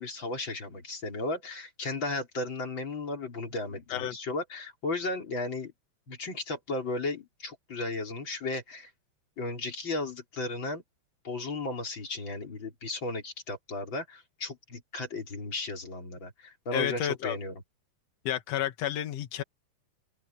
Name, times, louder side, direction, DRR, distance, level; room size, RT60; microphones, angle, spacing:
voice 1, 0.0-5.7 6.1-8.9 9.4-10.8 11.2-17.6, left 2 dB, 30° left, 4.5 m, -35 dB
voice 2, 16.7-17.4 18.2-19.4, left 11 dB, 90° left, 1.4 m, -31 dB
open air
omnidirectional pair, 4.8 m